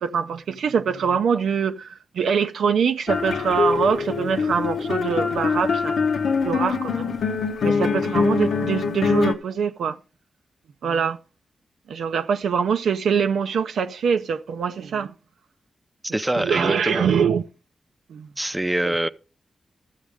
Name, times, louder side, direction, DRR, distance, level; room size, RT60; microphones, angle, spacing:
voice 1, 0.0-5.9 6.4-7.1 7.6-10.0 10.8-11.2 11.9-15.1 16.4-17.4 18.1-18.3 18.8-18.9, right 6 dB, 85° right, 0.4 m, -24 dB
sound 1, 3.1-9.3, left 5 dB, 80° left, 0.7 m, -23 dB
voice 2, 16.0-17.1 18.4-19.1, right 1 dB, 15° right, 0.5 m, -24 dB
12.5 x 7.2 x 3.5 m
cardioid pair, 45°, 0 cm